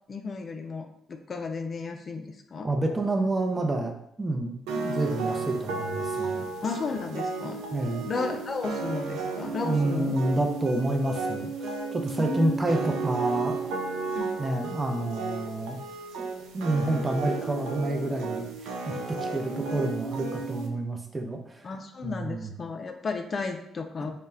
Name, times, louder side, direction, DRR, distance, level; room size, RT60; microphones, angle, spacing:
voice 1, 0.1-0.9 1.3-2.7 6.6-7.6 8.1-10.2 12.2-12.6 14.1-14.3 21.6-24.1, left 4 dB, 45° left, 5 dB, 0.3 m, -33 dB
voice 2, 2.6-3.9 4.2-6.5 7.7-8.1 9.6-13.6 14.4-15.8 16.2-16.3 16.5-21.6 22.0-22.5 24.0-24.1, right 2 dB, 25° right, 3 dB, 0.5 m, -29 dB
sound 1, 4.7-20.7, right 4 dB, 75° right, 0.3 m, -33 dB
2.1 x 2.1 x 3.4 m, 0.76 s
hypercardioid pair, 50°, 0 cm